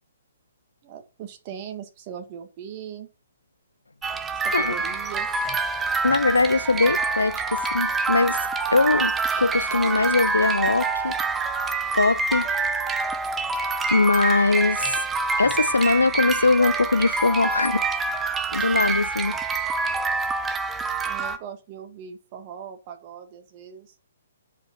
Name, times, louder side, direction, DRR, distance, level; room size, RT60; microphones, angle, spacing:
voice 1, 0.8-3.1 4.4-5.5 21.0-24.0, right 8 dB, 35° right, 1.9 m, -39 dB
sound 1, 4.0-21.4, right 4 dB, 15° right, 0.8 m, -26 dB
voice 2, 6.0-8.5 8.7-11.1 12.0-12.5 13.9-15.0 15.4-17.8 18.5-19.4, left 3 dB, 80° left, 0.5 m, -21 dB
8.7 x 5.1 x 5.8 m
figure-of-eight pair, 125°, 0 cm